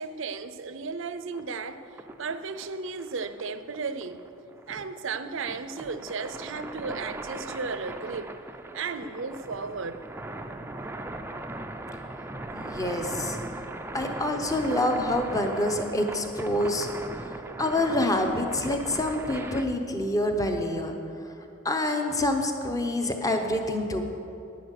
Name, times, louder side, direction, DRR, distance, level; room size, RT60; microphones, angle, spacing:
voice 1, 0.0-1.8 2.2-4.2 4.7-8.3 8.7-10.0, right 4 dB, 60° right, 0.5 m, -34 dB
sound 1, 1.3-19.7, right 2 dB, 10° right, 0.4 m, -39 dB
voice 2, 12.5-13.4 13.9-16.9 17.2-21.0 21.6-24.1, left 1 dB, 15° left, 0.9 m, -27 dB
10.5 x 9.8 x 6.5 m
head